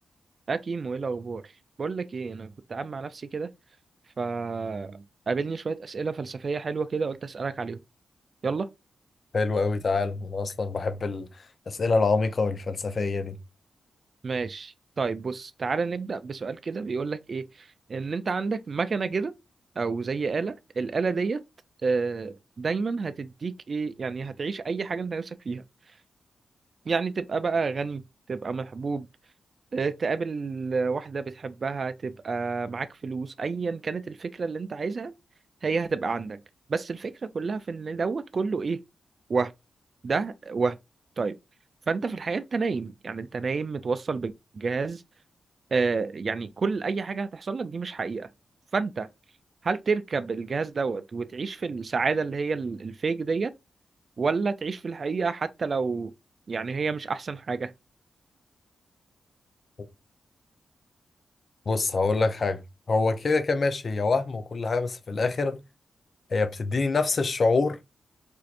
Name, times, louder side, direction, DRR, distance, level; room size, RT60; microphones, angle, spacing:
voice 1, 0.5-1.5 1.8-3.5 4.2-7.8 8.4-8.7 14.2-19.3 19.8-21.4 21.8-25.6 26.9-28.0 28.3-29.1 29.7-35.1 35.6-36.4 36.7-38.8 39.3-39.5 40.0-40.8 41.2-41.4 41.9-45.0 45.7-48.3 48.7-49.1 49.6-53.5 54.2-56.1 56.5-57.7, right 4 dB, 50° right, 0.3 m, -29 dB
voice 2, 9.3-11.3 11.7-13.4 61.7-62.6 62.9-65.6 66.3-67.8, left 3 dB, 50° left, 0.6 m, -25 dB
4.5 x 2.5 x 2.5 m
cardioid pair, 70°, 0 cm